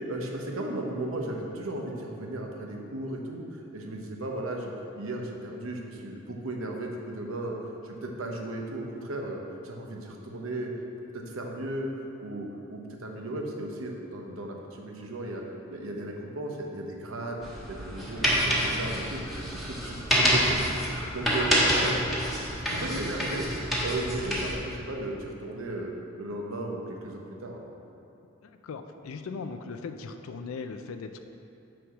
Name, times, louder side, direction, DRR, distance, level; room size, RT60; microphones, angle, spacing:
voice 1, 0.1-7.6 7.8-10.7 11.1-11.9 12.2-15.4 15.7-27.6, right 1 dB, 85° right, 1 dB, 0.9 m, -35 dB
sound 1, 17.4-24.5, equal, ahead, 1.2 m, -27 dB
voice 2, 28.4-31.2, left 4 dB, 85° left, 7 dB, 0.4 m, -38 dB
6.2 x 4.8 x 6.1 m, 2.9 s
head